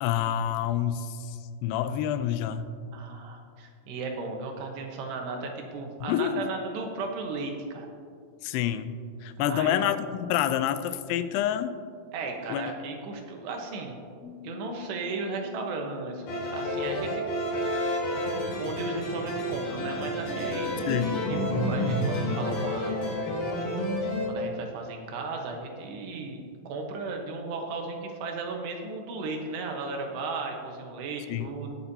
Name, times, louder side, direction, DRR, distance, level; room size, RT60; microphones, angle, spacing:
voice 1, 0.0-2.7 6.0-6.4 8.4-11.8 12.5-12.7 20.9-21.2 31.3-31.6, left 10 dB, 90° left, 11 dB, 2.7 m, -28 dB
voice 2, 2.9-7.9 9.5-9.8 12.1-14.0 14.4-17.2 18.5-20.9 21.3-23.0 23.6-23.7 24.3-31.8, right 3 dB, 90° right, 2 dB, 3.3 m, -35 dB
Bass guitar, 14.2-20.5, left 2 dB, 25° left, 1.4 m, -47 dB
sound 1, 16.3-24.3, left 1 dB, 65° left, 3.8 m, -29 dB
19.5 x 7.0 x 2.7 m, 2.2 s
omnidirectional pair, 4.7 m